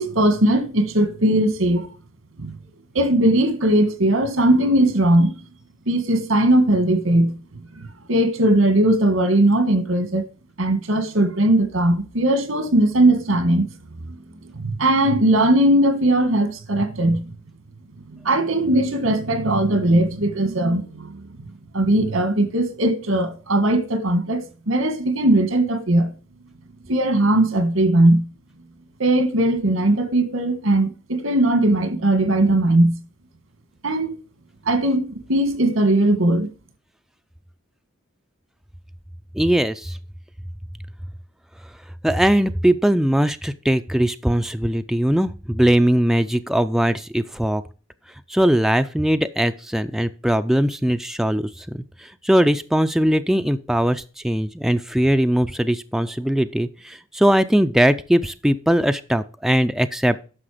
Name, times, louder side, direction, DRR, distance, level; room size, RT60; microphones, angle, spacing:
voice 1, 0.0-1.9 2.4-2.5 2.9-5.4 5.9-7.4 7.7-10.2 10.6-13.7 14.5-17.2 18.2-21.5 21.7-26.1 26.9-28.3 29.0-33.0 33.8-34.1 34.7-36.5, right 1 dB, 85° right, 1.8 m, -19 dB
voice 2, 39.3-40.0 42.0-47.6 48.3-60.2, equal, ahead, 0.4 m, -20 dB
9.9 x 6.4 x 5.0 m
head